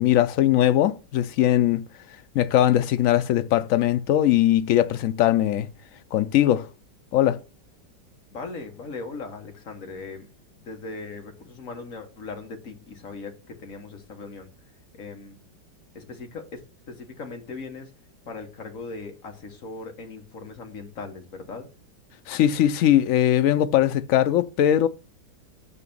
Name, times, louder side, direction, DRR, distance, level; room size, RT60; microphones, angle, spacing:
voice 1, 0.0-1.8 2.3-5.7 6.1-6.7 7.1-7.4 22.3-24.9, left 12 dB, 80° left, 0.7 m, -20 dB
voice 2, 8.3-15.4 15.9-17.9 18.3-21.7, left 4 dB, 50° left, 1.7 m, -39 dB
5.8 x 5.6 x 5.4 m
omnidirectional pair, 1.9 m